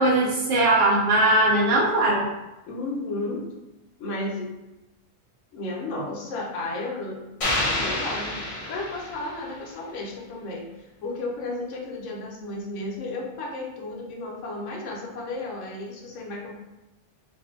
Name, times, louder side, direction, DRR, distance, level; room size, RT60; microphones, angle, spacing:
voice 1, 0.0-2.3, right 2 dB, 90° right, -4 dB, 1.0 m, -20 dB
voice 2, 2.7-3.5 4.0-4.5 5.5-7.3 7.7-10.7 11.0-16.5, left 2 dB, 85° left, -1 dB, 1.0 m, -33 dB
sound 1, 7.4-9.6, left 2 dB, 55° left, 0.3 m, -28 dB
2.6 x 2.5 x 2.4 m, 1.0 s
omnidirectional pair, 1.3 m